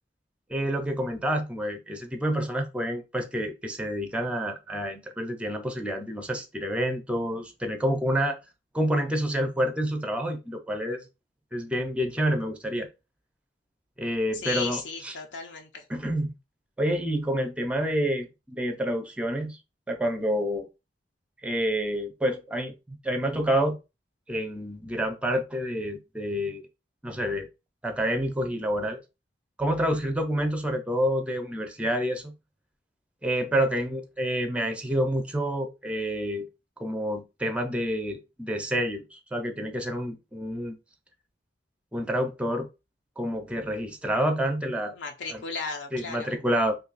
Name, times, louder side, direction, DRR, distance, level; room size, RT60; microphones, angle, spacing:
voice 1, 0.5-8.4 8.7-11.1 11.5-12.9 14.0-15.1 15.9-16.3 16.8-19.6 19.9-20.7 21.4-23.8 24.3-26.6 27.0-27.5 27.8-29.0 29.6-32.3 33.2-36.5 36.8-40.8 41.9-42.7 43.2-44.9 45.3-45.4 45.9-46.8, equal, 5° right, 0.5 m, -28 dB
voice 2, 14.3-15.9 44.9-46.3, left 4 dB, 75° left, 0.6 m, -35 dB
2.6 x 2.3 x 3.9 m
head